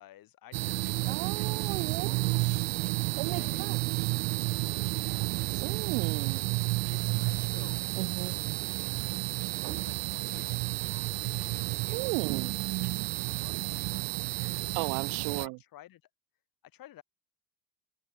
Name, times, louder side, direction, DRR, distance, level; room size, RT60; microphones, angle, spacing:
voice 1, 0.0-2.2 2.5-4.0 4.8-5.9 6.9-8.4 8.9-12.5 12.8-14.7 15.2-16.1 16.6-17.0, left 13 dB, 50° left, 5.1 m, -54 dB
sound 1, 0.5-15.5, right 27 dB, 55° right, 0.5 m, -31 dB
voice 2, 1.1-2.1 2.4-2.6 3.2-3.8 5.6-6.5 8.0-8.4 11.9-12.5 14.7-15.6, right 38 dB, 70° right, 1.0 m, -35 dB
supercardioid pair, 105°, 43 cm